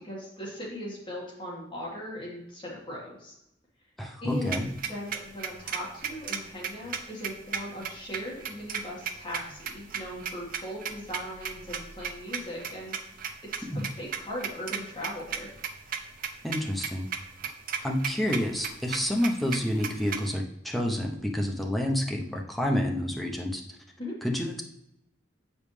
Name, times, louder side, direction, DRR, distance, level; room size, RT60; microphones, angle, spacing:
voice 1, 0.0-3.3 4.2-4.6 4.9-13.0 13.5-15.5 24.0-24.2, left 1 dB, 25° left, -4 dB, 1.8 m, -38 dB
voice 2, 4.0-4.7 13.7-13.8 16.4-17.1 17.8-23.6 24.2-24.6, left 1 dB, ahead, 0 dB, 0.7 m, -29 dB
sound 1, 4.3-20.3, right 7 dB, 50° right, 0.6 m, -36 dB
7.9 x 5.2 x 3.3 m, 0.83 s
head